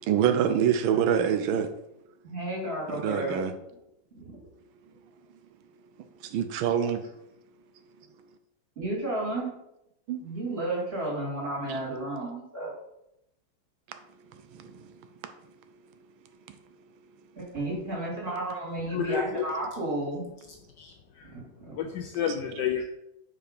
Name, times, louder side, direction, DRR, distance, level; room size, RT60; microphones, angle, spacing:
voice 1, 0.0-1.7 2.9-3.5 6.2-7.0 10.1-10.2 11.7-11.8 14.5-14.9, right 8 dB, 80° right, 1.3 m, -26 dB
voice 2, 2.2-3.4 8.8-9.5 10.2-12.7 17.4-20.2 21.3-21.9 22.8-22.9, right 1 dB, 30° right, 2.6 m, -32 dB
voice 3, 18.9-19.4 20.8-21.3 21.7-22.8, left 8 dB, 75° left, 1.0 m, -30 dB
4.9 x 4.6 x 5.1 m
omnidirectional pair, 2.2 m